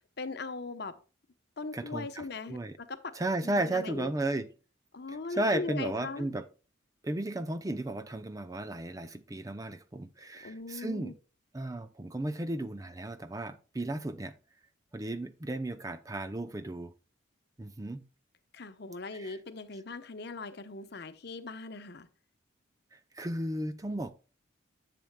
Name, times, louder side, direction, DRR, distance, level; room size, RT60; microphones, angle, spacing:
voice 1, 0.2-1.0 1.6-3.2 3.4-4.1 4.9-6.3 10.4-11.1 18.5-22.1, left 3 dB, 55° left, 0.8 m, -40 dB
voice 2, 1.7-2.8 3.1-4.5 5.1-6.5 7.0-11.2 11.5-14.3 14.9-16.9 17.6-18.0 19.1-19.4 23.1-24.1, right 1 dB, 15° right, 0.5 m, -34 dB
10.5 x 7.7 x 2.2 m
head